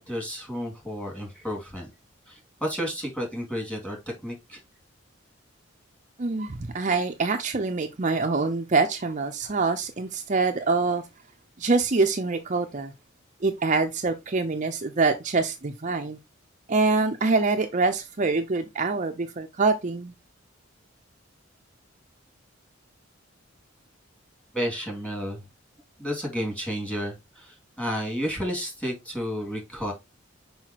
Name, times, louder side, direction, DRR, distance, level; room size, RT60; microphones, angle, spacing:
voice 1, 0.0-1.9 2.3-4.6 24.5-25.4 26.0-29.9, equal, 5° left, 2.5 m, -32 dB
voice 2, 6.2-11.0 11.6-12.9 13.4-16.2 16.7-20.1, right 3 dB, 40° right, 0.6 m, -25 dB
5.8 x 5.5 x 3.0 m
head